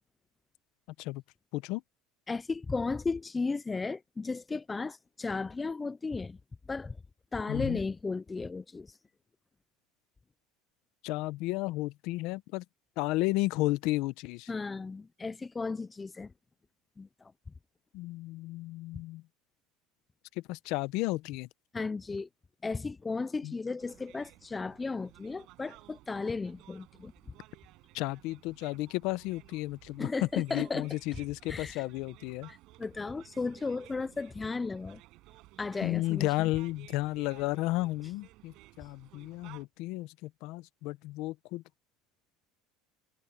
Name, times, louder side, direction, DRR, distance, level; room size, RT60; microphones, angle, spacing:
voice 1, 2.3-6.4 6.7-7.0 7.3-9.0 14.5-16.3 17.0-17.3 21.7-22.3 22.6-27.1 30.0-31.2 31.5-31.8 32.5-35.0 35.6-36.3, left 4 dB, 10° left, 0.4 m, -35 dB
voice 2, 7.5-7.8 11.0-12.6 13.0-14.5 17.9-19.2 20.5-21.5 23.4-23.5 27.9-32.5 35.8-41.6, left 19 dB, 55° left, 0.9 m, -33 dB
sound 1, 23.8-39.6, right 19 dB, 50° right, 7.9 m, -56 dB
cardioid pair, 160°, 0 cm